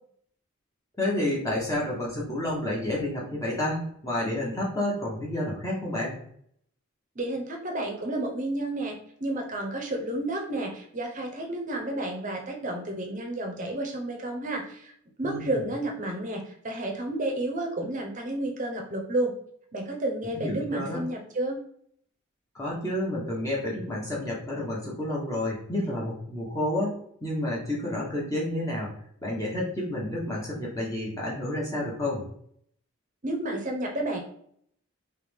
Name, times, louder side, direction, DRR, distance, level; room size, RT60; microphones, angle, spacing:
voice 1, 1.0-6.2 15.2-15.6 20.3-21.0 22.5-28.9 29.2-32.3, left 1 dB, 15° left, -5 dB, 1.0 m, -30 dB
voice 2, 7.2-14.9 15.2-19.3 19.7-21.6 33.2-34.2, right 1 dB, 35° right, 1 dB, 0.8 m, -31 dB
3.3 x 3.1 x 3.5 m, 0.65 s
head